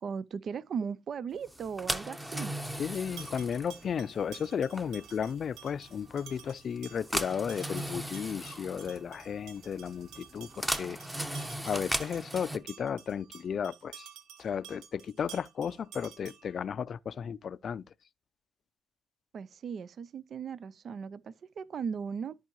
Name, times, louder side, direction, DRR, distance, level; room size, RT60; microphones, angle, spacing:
voice 1, 0.0-2.5 19.3-22.3, right 6 dB, 55° right, 0.4 m, -37 dB
sound 1, 1.5-12.6, right 1 dB, 10° right, 0.9 m, -38 dB
voice 2, 2.8-14.1 14.4-17.8, left 7 dB, 55° left, 0.4 m, -34 dB
sound 2, 2.9-16.6, right 9 dB, 90° right, 1.2 m, -52 dB
sound 3, 9.5-12.0, right 5 dB, 75° right, 2.0 m, -63 dB
13.5 x 4.6 x 3.0 m
cardioid pair, 90°, 0 cm